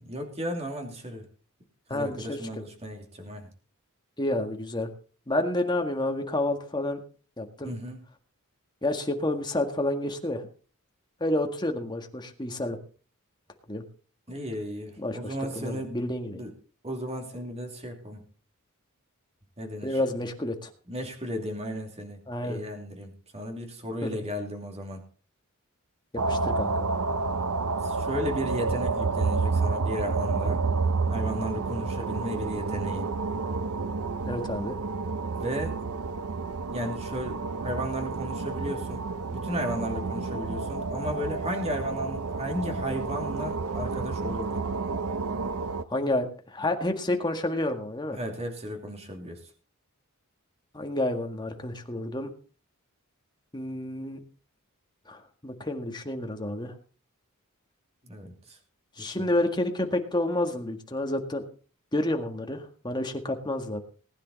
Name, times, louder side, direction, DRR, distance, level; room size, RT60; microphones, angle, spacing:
voice 1, 0.0-1.3 1.9-3.5 7.6-8.0 14.3-15.9 16.3-16.5 16.8-18.2 19.6-20.0 20.9-22.2 22.4-25.0 27.8-30.6 31.1-33.1 35.2-35.8 36.7-44.6 48.1-49.4 58.0-58.6 59.0-59.3, equal, 30° right, 4 dB, 2.7 m, -35 dB
voice 2, 1.9-2.4 4.2-4.9 5.3-7.0 7.4-7.7 8.8-10.5 11.2-12.8 13.7-13.8 15.0-16.4 19.8-20.7 22.3-22.6 24.0-24.1 26.1-26.9 34.2-34.8 45.9-48.2 50.7-52.3 53.5-54.2 55.1-56.7 59.0-61.4 61.9-63.8, left 1 dB, 20° left, 4 dB, 1.8 m, -29 dB
sound 1, 26.2-45.8, right 4 dB, 75° right, 0.8 m, -30 dB
19.5 x 10.0 x 4.1 m, 0.39 s
head